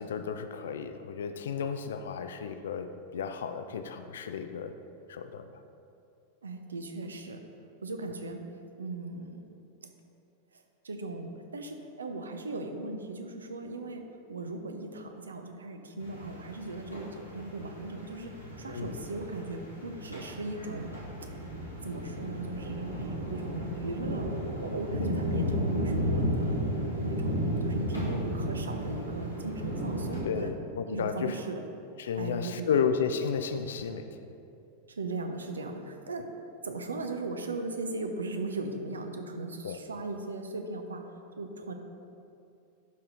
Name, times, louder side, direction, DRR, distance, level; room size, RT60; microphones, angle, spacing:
voice 1, 0.0-4.7 5.1-5.5 18.7-18.9 25.0-25.2 30.2-31.4 32.0-34.2 39.6-39.8, left 6 dB, 60° left, 8 dB, 0.4 m, -33 dB
voice 2, 6.4-7.4 7.8-8.4 8.8-9.4 9.8-9.9 10.5-21.0 21.8-26.6 27.0-30.5 30.9-31.6 32.2-32.8 34.9-36.3 36.6-41.7, right 2 dB, 70° right, 5 dB, 0.7 m, -38 dB
sound 1, 16.0-30.2, equal, 90° right, 1.7 m, -34 dB
11.5 x 4.3 x 3.9 m, 2.6 s
figure-of-eight pair, 90°, 0 cm